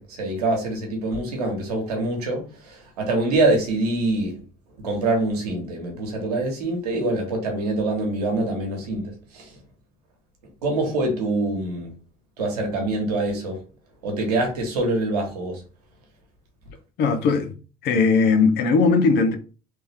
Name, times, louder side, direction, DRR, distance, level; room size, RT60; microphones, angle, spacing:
voice 1, 0.0-4.4 4.8-9.5 10.6-11.9 12.4-13.6 14.0-15.6, right 2 dB, 90° right, 1.2 m, -25 dB
voice 2, 17.0-17.5 17.8-19.4, left 4 dB, 60° left, 0.8 m, -19 dB
3.3 x 2.8 x 3.4 m
hypercardioid pair, 65°, 19 cm